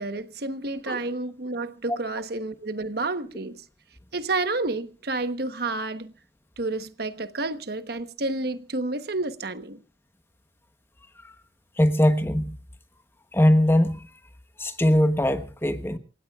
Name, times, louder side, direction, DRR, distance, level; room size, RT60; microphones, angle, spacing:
voice 1, 0.0-3.6 4.1-6.1 6.6-9.8, right 2 dB, 55° right, 1.1 m, -30 dB
voice 2, 11.8-12.6 13.3-14.1 14.6-16.0, left 1 dB, 10° left, 1.0 m, -21 dB
28.0 x 16.0 x 2.4 m
head